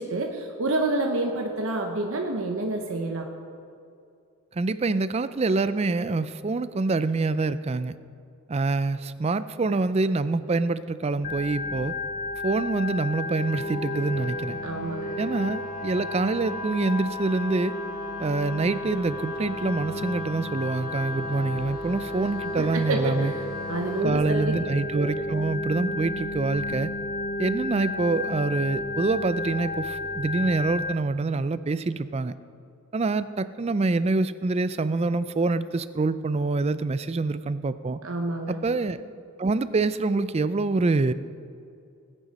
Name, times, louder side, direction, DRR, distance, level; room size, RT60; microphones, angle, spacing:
voice 1, 0.0-3.3 14.6-15.1 22.6-24.5 24.9-25.1 38.0-38.6, right 2 dB, 65° right, 3 dB, 0.9 m, -28 dB
voice 2, 4.6-7.9 8.5-11.9 12.4-14.6 15.2-17.7 18.2-23.3 24.0-26.9 27.4-32.3 32.9-38.0 38.5-39.1 39.4-41.1, right 3 dB, 30° right, 14 dB, 0.3 m, -26 dB
Organ, 11.2-30.9, left 2 dB, 35° left, 0.5 m, -33 dB
sound 1, 13.2-24.0, left 2 dB, ahead, 3.9 m, -40 dB
19.5 x 9.9 x 4.2 m, 2.4 s
head